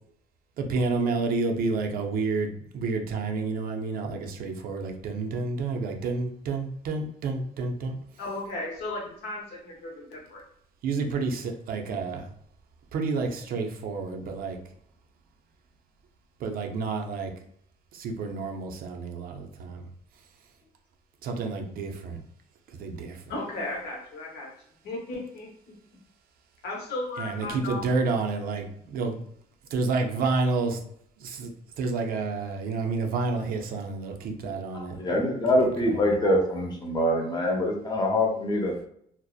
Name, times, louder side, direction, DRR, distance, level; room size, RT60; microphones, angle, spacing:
voice 1, 0.6-8.0 10.8-12.3 12.9-14.6 16.4-17.3 17.9-19.8 21.2-22.2 22.8-23.3 27.2-29.2 29.7-30.8 31.2-31.5 31.8-35.2 35.8-36.1, right 3 dB, 60° right, 0.5 m, -29 dB
voice 2, 8.2-10.4 23.3-24.5 24.8-25.5 26.6-27.8, left 2 dB, 80° left, 0.9 m, -35 dB
voice 3, 34.7-38.8, left 1 dB, 25° left, 0.7 m, -24 dB
2.6 x 2.0 x 2.3 m
cardioid pair, 110°, 17 cm